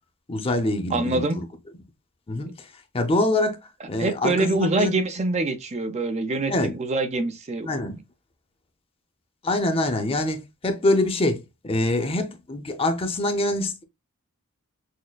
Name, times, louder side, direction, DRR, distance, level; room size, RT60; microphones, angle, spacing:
voice 1, 0.3-1.4 2.3-2.7 2.9-3.6 3.9-4.9 6.5-6.8 7.6-8.0 9.4-13.8, left 2 dB, 25° left, 0.6 m, -25 dB
voice 2, 0.9-1.4 4.0-8.0, right 2 dB, 30° right, 0.5 m, -25 dB
6.3 x 2.1 x 2.2 m
head